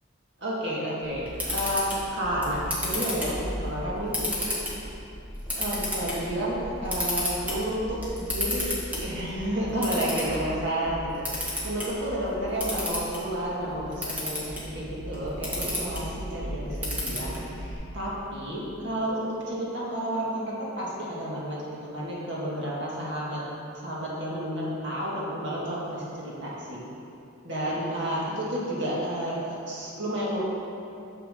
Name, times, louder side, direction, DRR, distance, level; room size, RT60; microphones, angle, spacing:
voice 1, 0.4-1.9 2.1-4.5 5.5-8.7 9.0-23.4 23.7-26.8 27.4-30.4, equal, 60° right, -6 dB, 2.1 m, -31 dB
Camera, 1.0-17.7, left 1 dB, 10° right, 1.7 m, -33 dB
9.8 x 6.6 x 3.9 m, 2.8 s
head